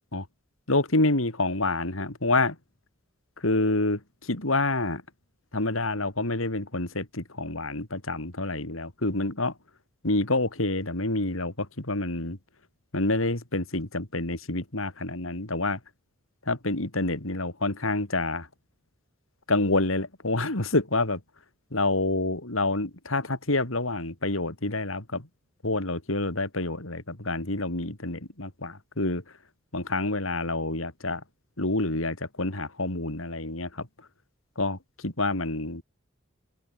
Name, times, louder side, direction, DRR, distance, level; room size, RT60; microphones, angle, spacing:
voice 1, 0.7-2.6 3.4-5.0 5.5-9.5 10.0-12.4 12.9-15.8 16.5-18.5 19.5-21.2 21.7-25.3 25.6-29.2 29.7-31.2 31.6-33.9 34.6-35.8, left 2 dB, 80° left, 3.6 m, -27 dB
open air
head